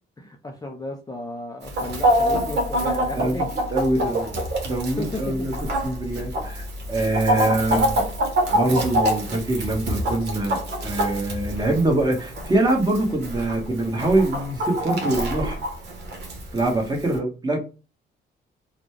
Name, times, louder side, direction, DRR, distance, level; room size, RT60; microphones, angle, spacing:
voice 1, 0.2-3.4 4.1-4.2 5.0-5.4, left 2 dB, 20° left, 0.6 m, -34 dB
Chicken rooster, 1.6-17.2, equal, 55° right, 1.2 m, -26 dB
voice 2, 3.1-5.5 5.8-8.0 8.5-15.6 16.5-17.7, right 2 dB, 20° right, 1.4 m, -24 dB
3.8 x 2.3 x 3.2 m
cardioid pair, 90°, 20 cm